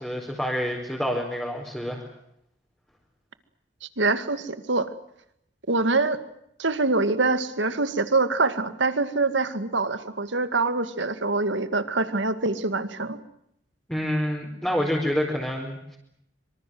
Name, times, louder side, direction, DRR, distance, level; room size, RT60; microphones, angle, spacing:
voice 1, 0.0-2.0 13.9-16.0, equal, 5° left, -3 dB, 4.6 m, -27 dB
voice 2, 4.0-4.9 5.7-6.2 6.6-13.2, right 3 dB, 80° right, 11 dB, 2.1 m, -24 dB
25.5 x 25.0 x 7.8 m, 0.76 s
head